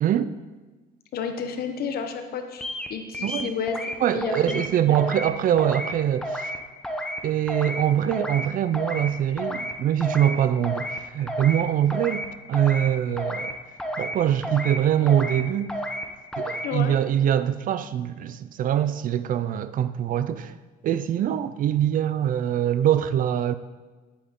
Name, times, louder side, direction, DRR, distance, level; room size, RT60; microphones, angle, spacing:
voice 1, 0.0-0.3 3.2-3.5 4.0-6.5 7.2-13.5 14.0-15.7 16.4-20.5 20.8-23.5, right 10 dB, 55° right, 0.5 m, -23 dB
voice 2, 1.1-3.8 4.1-4.6 4.9-5.0 16.6-17.0, left 6 dB, 65° left, 1.2 m, -31 dB
sound 1, 2.6-2.9 3.1-3.9 4.2-4.7 4.9-5.3 5.6-5.9 6.2-6.6 6.8-7.2 7.5-7.8 8.1-8.5 8.7-9.1 9.4-9.7 10.0-10.4 10.6-11.0 11.3-11.6 11.9-12.3 12.5-12.9 13.2-13.5 13.8-14.2 14.4-14.8 15.1-15.4 15.7-16.0 16.3-16.7, equal, 5° left, 1.0 m, -31 dB
10.0 x 8.4 x 3.8 m
cardioid pair, 110°, 17 cm